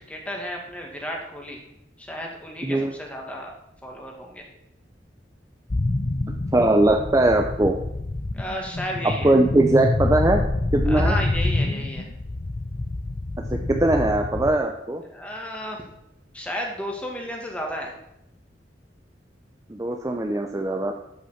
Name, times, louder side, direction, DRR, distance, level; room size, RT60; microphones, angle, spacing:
voice 1, 0.0-1.6 2.0-3.5 3.8-4.4 8.3-9.3 10.8-12.1 15.1-15.8 16.3-18.0, equal, 10° left, 0 dB, 2.1 m, -33 dB
voice 2, 2.6-2.9 6.5-7.8 9.2-10.4 10.7-11.2 13.5-15.0 19.7-20.9, right 1 dB, 20° right, 3 dB, 0.6 m, -20 dB
sound 1, 5.7-14.6, left 2 dB, 35° left, 0.5 m, -27 dB
13.0 x 5.8 x 5.9 m, 0.83 s
head